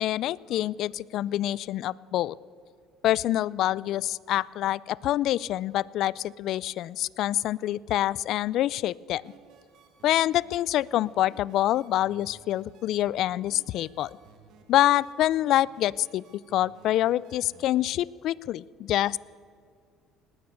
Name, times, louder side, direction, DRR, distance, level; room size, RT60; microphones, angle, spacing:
voice 1, 0.0-2.3 3.0-9.2 10.0-14.1 14.7-16.2 16.5-19.2, left 13 dB, 65° left, 23 dB, 0.3 m, -26 dB
sound 1, 9.2-18.0, right 7 dB, 65° right, 1.6 m, -57 dB
18.5 x 9.4 x 8.0 m, 2.2 s
supercardioid pair, 75°, 0 cm